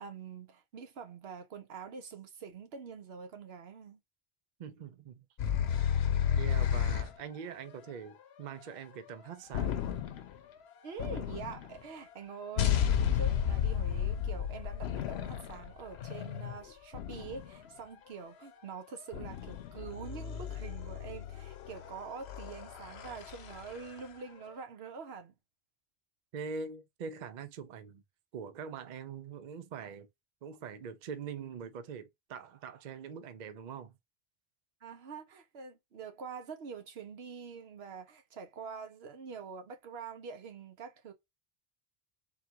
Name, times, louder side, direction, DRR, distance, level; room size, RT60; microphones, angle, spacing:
voice 1, 0.0-4.0 10.8-25.3 34.8-41.1, right 5 dB, 80° right, 1.1 m, -45 dB
voice 2, 4.6-5.2 6.3-9.9 26.3-28.0 28.3-30.1 30.4-34.0, right 6 dB, 55° right, 0.6 m, -43 dB
sound 1, 5.4-7.2 9.5-10.4 11.0-11.8 12.6-17.7 19.1-24.0, left 9 dB, 80° left, 0.9 m, -33 dB
3.8 x 2.4 x 4.4 m
omnidirectional pair, 1.0 m